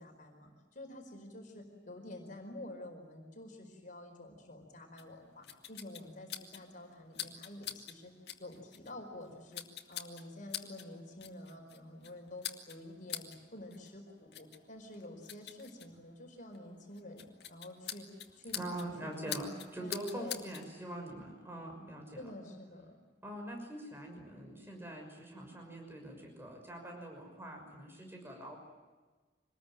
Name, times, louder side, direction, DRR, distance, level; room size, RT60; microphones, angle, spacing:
voice 1, 0.0-8.1 8.4-18.1 18.3-19.5 19.8-20.4 22.1-22.9, left 1 dB, 50° left, 3 dB, 4.8 m, -49 dB
sound 1, 5.0-20.7, left 10 dB, 65° left, 2.2 m, -47 dB
voice 2, 18.5-22.3 23.2-28.6, right 1 dB, 15° right, 2 dB, 6.0 m, -44 dB
26.0 x 20.5 x 9.1 m, 1.3 s
head